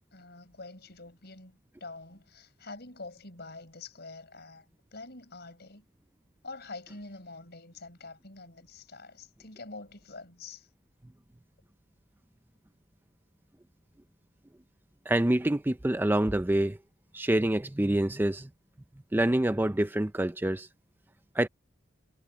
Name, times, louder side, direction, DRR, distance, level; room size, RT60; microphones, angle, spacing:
voice 1, 0.1-4.6 4.9-5.8 6.4-10.7, left 3 dB, 60° left, 6.1 m, -46 dB
voice 2, 15.1-16.8 17.1-18.5 19.1-20.7 21.4-21.5, right 1 dB, 10° right, 0.5 m, -26 dB
head